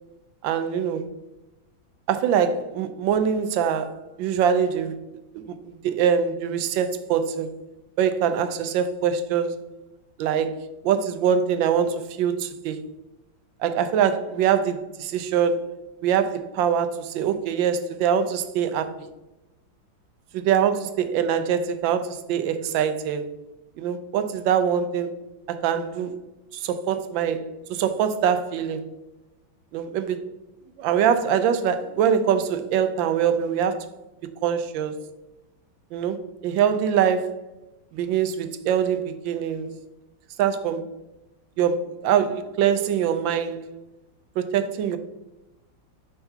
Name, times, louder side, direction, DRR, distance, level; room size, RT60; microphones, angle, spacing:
voice 1, 0.4-1.1 2.1-5.0 5.3-7.5 8.0-9.6 10.2-12.9 13.6-15.7 16.0-19.1 20.3-23.2 23.8-25.1 25.5-26.2 26.5-28.9 29.7-30.2 30.8-33.9 34.2-34.9 35.9-37.3 37.9-39.8 40.4-40.9 41.6-43.6 44.4-45.0, right 8 dB, 80° right, 1.3 m, -24 dB
6.6 x 5.8 x 2.8 m
omnidirectional pair, 2.1 m